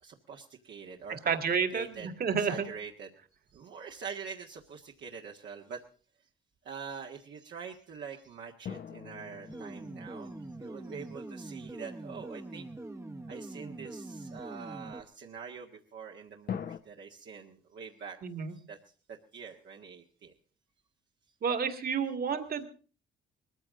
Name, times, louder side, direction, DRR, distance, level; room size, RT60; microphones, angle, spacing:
voice 1, 0.0-1.4 1.7-2.1 2.4-3.1 3.5-5.8 6.6-10.3 10.6-12.7 13.3-18.2 18.7-18.8 19.1-20.3, right 6 dB, 65° right, -1 dB, 1.7 m, -44 dB
voice 2, 1.3-2.7 18.2-18.6 21.4-22.7, right 6 dB, 50° right, 8 dB, 2.2 m, -30 dB
sound 1, 8.6-11.6 16.5-16.8, left 8 dB, 50° left, 1.0 m, -43 dB
sound 2, 9.5-15.0, right 2 dB, 15° right, 1.1 m, -43 dB
20.0 x 14.5 x 3.8 m, 0.39 s
cardioid pair, 90°, 20 cm